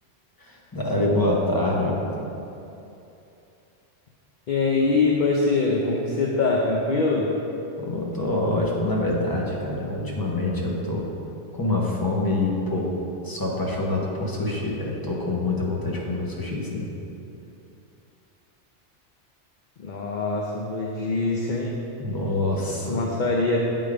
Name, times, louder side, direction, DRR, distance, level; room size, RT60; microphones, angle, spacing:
voice 1, 0.4-2.2 7.8-11.0 11.5-12.9 13.2-16.9 22.0-23.0, left 2 dB, 20° left, -3 dB, 0.9 m, -26 dB
voice 2, 4.5-7.3 19.8-21.8 22.8-23.6, left 3 dB, 50° left, -1 dB, 0.6 m, -23 dB
8.1 x 3.9 x 4.9 m, 2.8 s
omnidirectional pair, 1.2 m